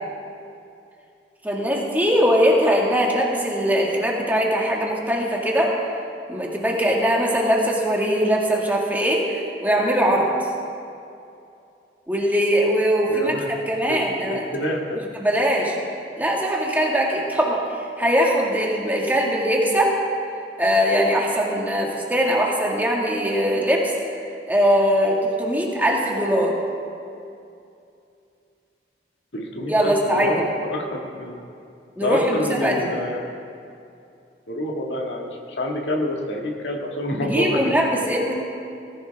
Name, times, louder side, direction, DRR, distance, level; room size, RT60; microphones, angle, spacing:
voice 1, 1.4-5.7 6.3-10.3 12.1-13.3 13.7-14.4 15.1-15.7 16.2-17.6 18.0-19.9 20.6-23.9 24.5-26.5 29.7-30.5 32.0-32.8 37.2-38.3, equal, 10° right, -2 dB, 1.8 m, -21 dB
voice 2, 13.1-13.6 13.9-15.0 29.3-31.4 32.0-33.3 34.5-37.7, left 1 dB, 80° left, 0 dB, 1.8 m, -27 dB
19.0 x 15.0 x 3.5 m, 2.6 s
head